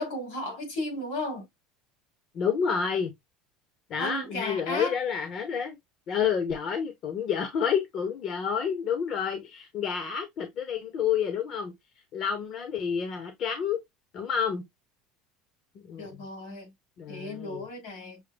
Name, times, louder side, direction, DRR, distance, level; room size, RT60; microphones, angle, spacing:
voice 1, 0.0-1.5 4.0-4.9 16.0-16.7 17.1-18.2, left 1 dB, 70° left, 2.9 m, -34 dB
voice 2, 2.3-3.1 3.9-5.8 6.1-11.7 12.1-13.8 14.1-14.6 15.8-16.2 17.0-17.7, left 7 dB, 40° left, 0.8 m, -29 dB
6.3 x 2.2 x 3.3 m
cardioid pair, 155°, 0 cm